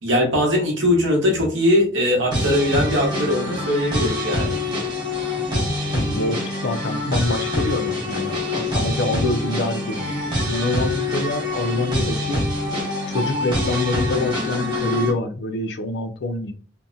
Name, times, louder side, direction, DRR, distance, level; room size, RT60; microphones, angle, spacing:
voice 1, 0.0-4.5, left 1 dB, 80° right, 0 dB, 0.9 m, -20 dB
sound 1, 2.3-15.1, left 2 dB, 25° right, 0.8 m, -25 dB
voice 2, 5.9-12.4 13.1-16.5, left 2 dB, 60° left, 7 dB, 0.4 m, -26 dB
2.7 x 2.1 x 2.4 m, 0.39 s
head